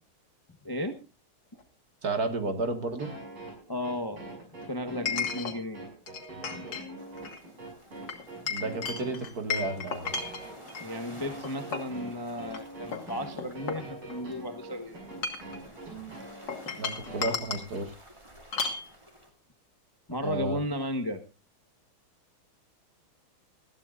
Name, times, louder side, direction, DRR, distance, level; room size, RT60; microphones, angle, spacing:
voice 1, 0.6-1.0 3.7-4.2 4.7-5.8 10.8-15.1 20.1-21.2, left 1 dB, 15° left, 7 dB, 0.8 m, -34 dB
Chink clink, 1.6-1.7 5.1-5.6 6.1-6.9 7.2-7.4 8.1-10.9 11.4-12.0 12.5-12.6 12.9-14.3 15.0-15.6 16.5-17.7 18.5-18.8, left 5 dB, 60° left, 2.5 m, -34 dB
voice 2, 2.0-3.1 8.5-10.1 16.8-17.9 20.2-20.6, right 2 dB, 50° right, 7 dB, 2.3 m, -32 dB
sound 1, 3.0-17.8, right 1 dB, 85° right, 6.8 m, -43 dB
sound 2, 7.0-19.3, right 1 dB, 15° right, 2.8 m, -52 dB
20.0 x 14.5 x 2.5 m, 0.30 s
omnidirectional pair, 2.2 m